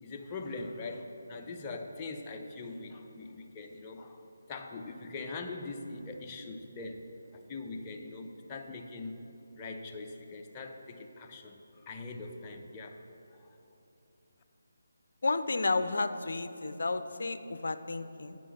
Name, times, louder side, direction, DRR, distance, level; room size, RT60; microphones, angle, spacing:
voice 1, 0.0-4.2 4.5-7.0 7.3-9.2 9.6-13.0 13.3-13.6, left 3 dB, 20° left, 2 dB, 0.7 m, -42 dB
voice 2, 15.2-18.4, left 3 dB, 65° left, 11 dB, 0.5 m, -32 dB
9.5 x 6.2 x 5.7 m, 2.9 s
figure-of-eight pair, 155°, 0 cm